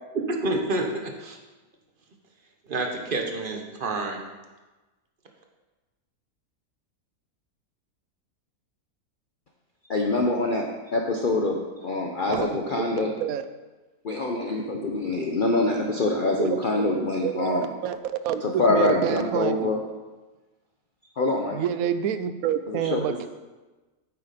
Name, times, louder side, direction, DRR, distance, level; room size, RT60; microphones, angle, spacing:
voice 1, 0.1-1.4 2.7-4.2, right 2 dB, 40° right, 3 dB, 1.2 m, -28 dB
voice 2, 9.9-10.7 10.9-13.1 14.0-17.7 18.4-19.8 21.2-21.6 22.7-23.2, left 2 dB, 45° left, 1 dB, 0.8 m, -25 dB
voice 3, 12.3-12.8 13.2-13.5 16.4-16.8 17.2-19.7 21.5-23.3, right 9 dB, 75° right, 11 dB, 1.0 m, -28 dB
8.7 x 8.5 x 4.2 m, 1.2 s
omnidirectional pair, 1.6 m